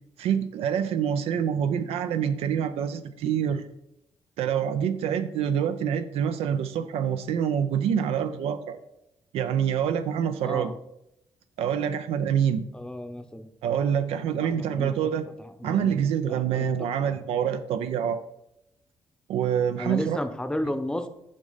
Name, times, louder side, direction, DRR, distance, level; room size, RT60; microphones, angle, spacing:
voice 1, 0.2-3.7 4.4-8.8 9.3-10.7 11.6-12.6 13.6-15.3 15.6-18.2 19.3-20.2, right 8 dB, 90° right, 10 dB, 0.4 m, -26 dB
voice 2, 10.4-10.7 12.7-13.5 14.4-15.1 15.6-16.7 17.0-17.2 19.8-21.1, left 1 dB, 10° left, 9 dB, 0.7 m, -33 dB
6.2 x 5.2 x 4.0 m, 0.83 s
cardioid pair, 90°, 10 cm